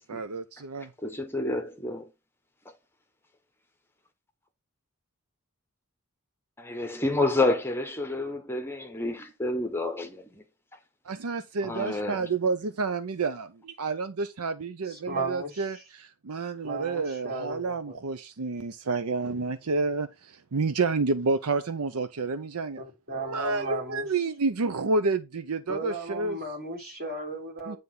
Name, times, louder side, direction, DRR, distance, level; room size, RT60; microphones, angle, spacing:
voice 1, 0.1-0.9 11.1-22.8 23.2-26.4 27.7-27.8, right 4 dB, 75° right, 0.6 m, -29 dB
voice 2, 1.0-2.1 6.6-10.4 11.6-12.3, left 2 dB, 10° left, 0.8 m, -29 dB
voice 3, 14.8-15.8 16.6-17.9 22.8-24.0 25.7-27.8, right 2 dB, 45° right, 4.0 m, -35 dB
9.6 x 3.5 x 5.5 m
head